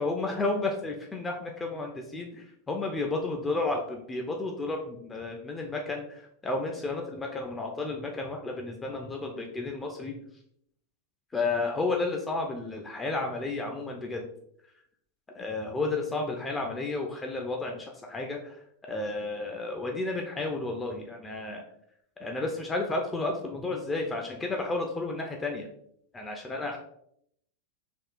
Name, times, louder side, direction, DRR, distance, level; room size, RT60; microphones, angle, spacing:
voice 1, 0.0-10.1 11.3-14.3 15.3-18.6 18.9-21.6 22.2-25.7 26.1-26.8, left 3 dB, 15° left, 1 dB, 0.3 m, -32 dB
3.5 x 2.3 x 2.4 m, 0.72 s
figure-of-eight pair, 90°, 0 cm